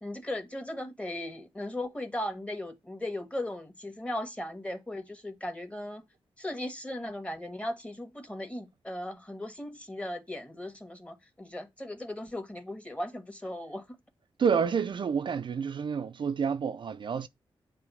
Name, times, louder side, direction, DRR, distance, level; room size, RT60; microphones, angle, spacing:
voice 1, 0.0-6.0 6.4-13.8, left 1 dB, 10° left, 1.3 m, -37 dB
voice 2, 14.4-17.3, right 6 dB, 55° right, 0.4 m, -29 dB
7.5 x 2.6 x 5.5 m
cardioid pair, 65°, 10 cm